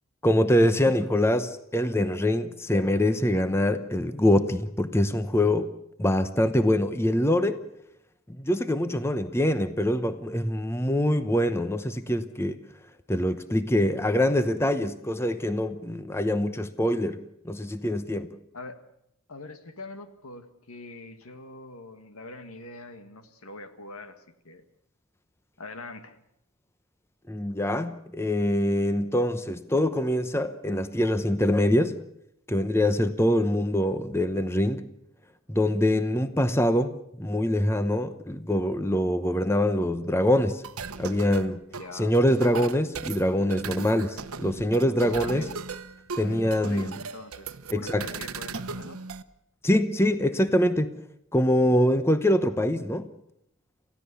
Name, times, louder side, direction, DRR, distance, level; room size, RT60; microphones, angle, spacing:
voice 1, 0.2-5.7 6.0-7.6 8.3-12.6 13.1-17.2 17.4-18.3 27.3-32.0 32.5-34.8 35.5-40.6 41.0-41.6 41.9-45.4 46.2-47.0 47.7-48.1 49.6-50.9 51.3-53.1, left 1 dB, 10° left, 10 dB, 0.8 m, -24 dB
voice 2, 19.3-24.6 25.6-26.2 41.8-42.2 45.1-45.5 46.2-49.0, left 2 dB, 85° left, 8 dB, 1.9 m, -43 dB
sound 1, 40.6-49.2, right 5 dB, 90° right, 1.0 m, -37 dB
28.5 x 15.5 x 7.0 m, 0.78 s
head